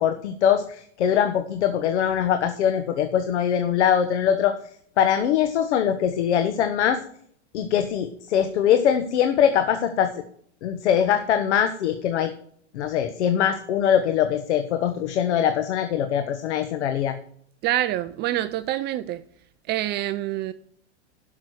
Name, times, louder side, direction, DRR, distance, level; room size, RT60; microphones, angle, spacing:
voice 1, 0.0-4.5 5.0-7.0 7.5-10.1 10.6-12.3 12.7-17.2, left 9 dB, 75° left, 1.3 m, -22 dB
voice 2, 17.6-19.2 19.7-20.5, right 14 dB, 30° right, 0.5 m, -26 dB
11.5 x 6.4 x 6.3 m
supercardioid pair, 130°, 34 cm